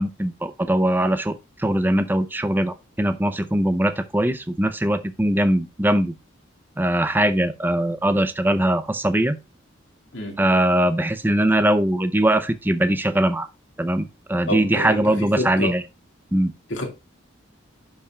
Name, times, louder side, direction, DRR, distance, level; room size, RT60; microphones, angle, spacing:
voice 1, 0.0-6.1 6.8-9.4 10.4-13.5 13.8-15.8 16.3-16.5, right 1 dB, 10° right, 0.5 m, -21 dB
voice 2, 14.5-15.7 16.7-16.9, left 1 dB, 70° left, 2.3 m, -28 dB
11.5 x 5.6 x 2.3 m
head